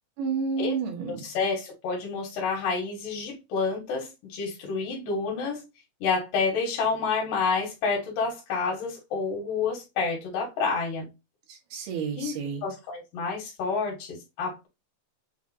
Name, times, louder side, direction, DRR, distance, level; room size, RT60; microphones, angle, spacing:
voice 1, 0.2-1.2 11.5-12.6, right 5 dB, 80° right, 2.9 m, -30 dB
voice 2, 1.1-5.6 6.0-11.1 12.2-12.4 12.6-14.7, left 4 dB, 85° left, 3.1 m, -29 dB
7.1 x 2.6 x 2.6 m
omnidirectional pair, 3.7 m